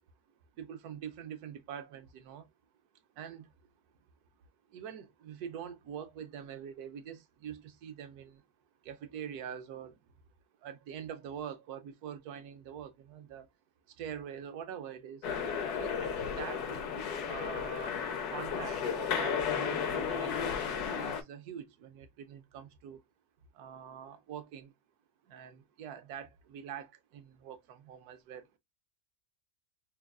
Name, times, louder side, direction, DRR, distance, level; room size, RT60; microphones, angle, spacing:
voice 1, 0.6-2.5 3.2-3.5 4.7-8.5 8.8-10.0 10.6-13.5 13.9-15.3 15.7-16.8 17.3-18.0 18.3-20.3 21.0-23.0 23.5-24.7 25.2-28.6, right 8 dB, 80° right, 1.2 m, -44 dB
sound 1, 15.2-21.2, left 6 dB, 85° left, 1.4 m, -33 dB
5.4 x 2.4 x 2.3 m
omnidirectional pair, 1.6 m